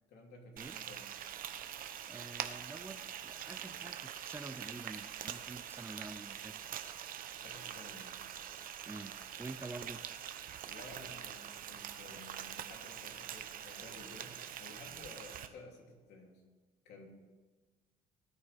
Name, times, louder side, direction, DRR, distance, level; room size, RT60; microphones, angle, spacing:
voice 1, 0.1-1.1 7.4-8.2 10.6-16.4 16.8-17.1, left 2 dB, 75° left, 0 dB, 3.2 m, -54 dB
Frying (food), 0.6-15.5, right 10 dB, 55° right, 0.9 m, -44 dB
voice 2, 2.1-6.5 8.9-10.0, right 2 dB, 15° right, 9 dB, 0.6 m, -48 dB
19.0 x 9.9 x 3.6 m, 1.3 s
cardioid pair, 110°, 17 cm